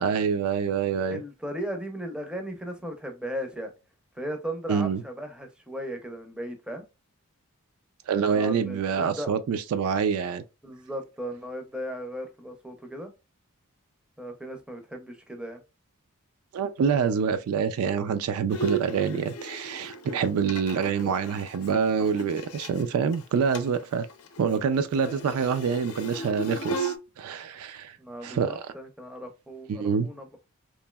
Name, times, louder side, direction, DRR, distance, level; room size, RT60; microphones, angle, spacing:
voice 1, 0.0-1.2 4.7-5.0 8.1-10.4 16.5-24.1 24.4-28.0 28.2-28.7 29.7-30.1, right 6 dB, 75° right, 0.3 m, -26 dB
voice 2, 1.1-3.7 4.2-6.8 8.3-9.3 10.6-13.1 14.2-15.6 20.4-20.5 21.0-21.1 28.0-30.3, equal, 5° right, 0.5 m, -36 dB
Bowed string instrument, 18.5-22.8 23.1-23.2 23.5-23.8 24.1-27.0, right 3 dB, 85° left, 0.6 m, -35 dB
3.0 x 2.6 x 2.2 m
head